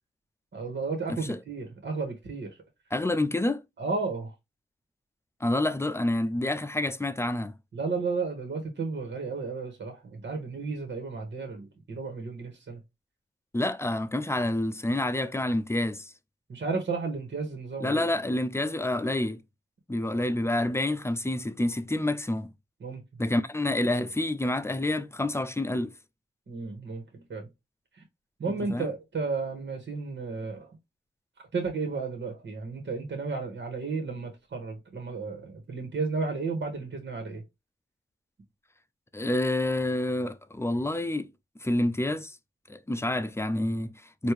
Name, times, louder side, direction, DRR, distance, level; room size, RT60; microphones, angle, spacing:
voice 1, 0.5-2.5 3.8-4.3 7.7-12.8 16.5-18.1 22.8-23.0 26.5-27.5 28.4-30.7 31.5-37.4, right 4 dB, 70° right, 1.6 m, -33 dB
voice 2, 1.1-1.4 2.9-3.6 5.4-7.6 13.5-16.1 17.8-19.4 19.9-22.5 23.2-25.9 28.6-28.9 39.1-41.3 41.6-42.4 42.7-44.3, left 1 dB, 15° left, 0.6 m, -28 dB
4.4 x 2.7 x 3.3 m
cardioid pair, 65°, 19 cm